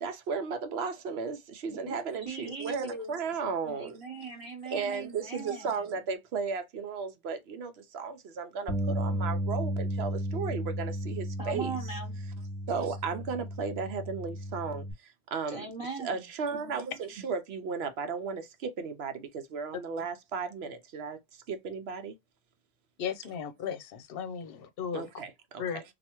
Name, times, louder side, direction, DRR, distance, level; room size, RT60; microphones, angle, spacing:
voice 1, 0.0-4.0 4.7-11.7 12.7-15.7 16.0-22.2 24.9-25.8, right 5 dB, 70° right, 0.9 m, -35 dB
voice 2, 2.2-3.1 3.4-5.8 11.4-12.2 15.5-16.3, right 4 dB, 30° right, 1.0 m, -39 dB
Bass guitar, 8.7-14.9, equal, 15° left, 1.2 m, -34 dB
voice 3, 23.0-25.0 25.6-25.8, left 7 dB, 65° left, 0.8 m, -35 dB
3.3 x 2.4 x 2.9 m
omnidirectional pair, 1.1 m